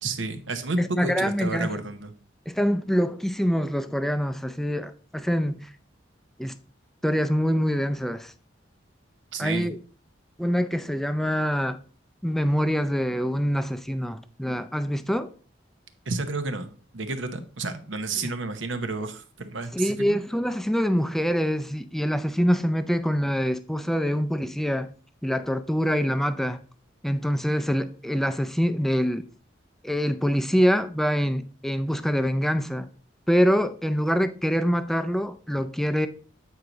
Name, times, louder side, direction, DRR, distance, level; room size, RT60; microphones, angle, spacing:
voice 1, 0.0-2.1 9.3-9.7 16.1-16.7 16.9-20.2, right 3 dB, 75° right, 0.9 m, -31 dB
voice 2, 0.8-1.7 2.5-5.7 6.4-6.6 7.0-8.3 9.4-9.8 10.4-11.8 12.2-15.3 19.7-24.9 25.2-26.6 27.0-29.2 29.8-32.9 33.3-36.1, equal, ahead, 0.4 m, -25 dB
8.5 x 4.7 x 3.9 m
head